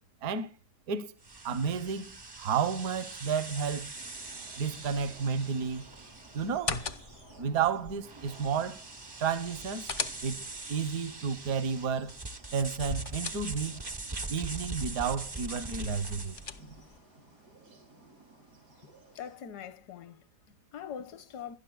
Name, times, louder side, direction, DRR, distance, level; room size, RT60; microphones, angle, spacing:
sound 1, 1.2-16.6, right 2 dB, 35° right, 0.4 m, -42 dB
voice 1, 1.4-2.1 2.4-3.9 4.6-5.9 6.3-6.8 7.4-8.8 9.2-9.9 10.2-12.1 12.5-13.8 14.3-16.3, right 6 dB, 65° right, 1.4 m, -31 dB
sound 2, 3.9-19.4, right 2 dB, 80° right, 8.0 m, -56 dB
sound 3, 6.5-7.4 9.4-10.7 12.6-13.9 15.9-17.0, left 4 dB, 60° left, 0.3 m, -39 dB
voice 2, 19.1-21.6, left 8 dB, 80° left, 1.5 m, -43 dB
22.5 x 12.0 x 2.3 m
omnidirectional pair, 1.7 m